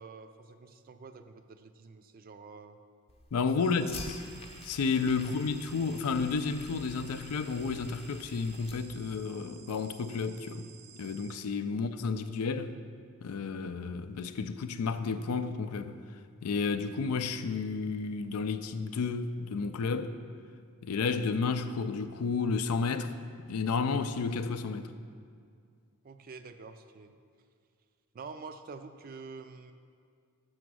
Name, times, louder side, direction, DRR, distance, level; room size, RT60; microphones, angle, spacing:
voice 1, 0.0-2.8 3.6-4.0 5.2-5.4 11.7-11.8 26.0-27.2 28.1-29.7, right 4 dB, 40° right, 0.4 m, -47 dB
Fire, 3.1-9.1, left 3 dB, 30° left, 0.7 m, -48 dB
voice 2, 3.3-4.2 4.6-10.7 11.0-12.8 13.2-16.0 16.4-20.2 20.8-23.1 23.5-24.9, left 4 dB, 85° left, 0.4 m, -31 dB
sound 1, 3.6-11.4, right 7 dB, 90° right, 0.7 m, -54 dB
6.2 x 5.9 x 6.2 m
head